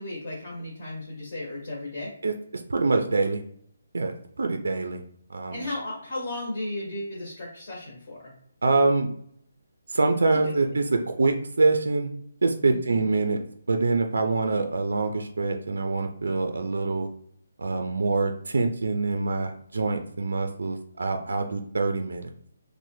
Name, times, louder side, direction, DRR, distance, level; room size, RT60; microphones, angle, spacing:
voice 1, 0.0-2.1 5.5-8.3 10.3-10.5 12.6-13.1, left 2 dB, 35° left, -3 dB, 0.6 m, -35 dB
voice 2, 2.2-3.4 3.9-5.0 5.3-5.6 8.6-9.1 9.9-12.1 12.4-13.4 13.7-17.1 17.6-22.3, right 3 dB, 80° right, 6 dB, 0.3 m, -25 dB
3.1 x 2.1 x 3.0 m, 0.67 s
hypercardioid pair, 180°, 0 cm